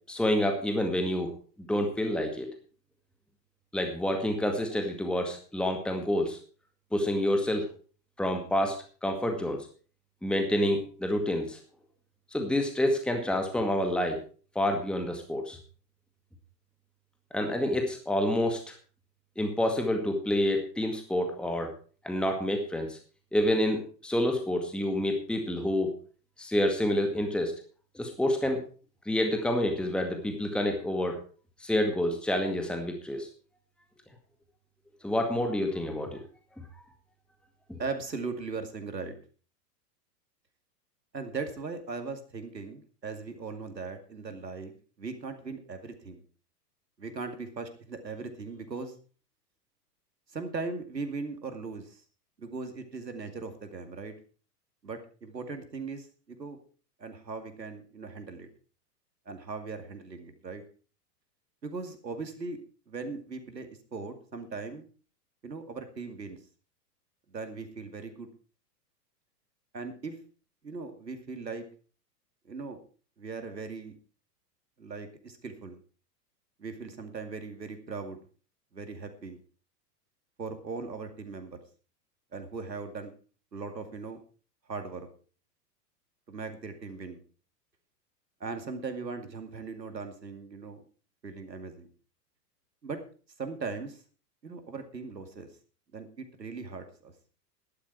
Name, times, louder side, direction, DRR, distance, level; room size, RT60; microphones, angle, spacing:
voice 1, 0.1-1.3 1.7-2.5 3.7-6.4 6.9-7.6 8.2-9.7 10.2-11.6 12.3-14.2 14.6-15.6 17.3-18.7 19.4-21.7 22.0-23.0 23.3-25.9 26.4-27.5 28.0-28.6 29.1-31.2 31.6-33.3 35.0-36.2 37.7-37.8, left 1 dB, ahead, 4 dB, 2.0 m, -28 dB
voice 2, 37.8-39.2 41.1-44.7 45.0-46.2 47.0-49.0 50.3-52.0 52.4-54.2 54.8-56.6 57.0-58.5 59.3-60.6 61.6-64.9 65.4-66.4 67.3-68.3 69.7-70.2 70.6-71.7 72.4-72.8 73.2-73.9 74.8-75.8 76.6-78.2 78.7-79.4 80.4-81.6 82.3-83.1 83.5-84.2 84.7-85.1 86.3-87.2 88.4-90.8 91.2-91.9 92.8-93.0 93.4-94.0 94.4-95.5 95.9-97.1, right 4 dB, 90° right, 7 dB, 2.4 m, -39 dB
12.5 x 11.5 x 4.7 m, 0.39 s
figure-of-eight pair, 100°, 48 cm